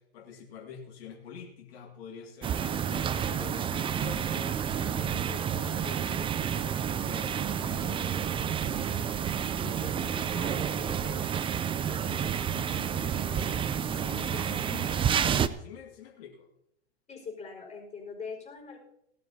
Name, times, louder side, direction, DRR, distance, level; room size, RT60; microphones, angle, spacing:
voice 1, 0.0-16.5, left 7 dB, 70° left, 0 dB, 2.0 m, -46 dB
sound 1, 2.4-15.5, right 8 dB, 15° right, 0.4 m, -30 dB
voice 2, 17.1-18.8, left 5 dB, 20° left, 0 dB, 5.3 m, -41 dB
18.0 x 12.5 x 2.8 m, 0.76 s
hypercardioid pair, 105°, 32 cm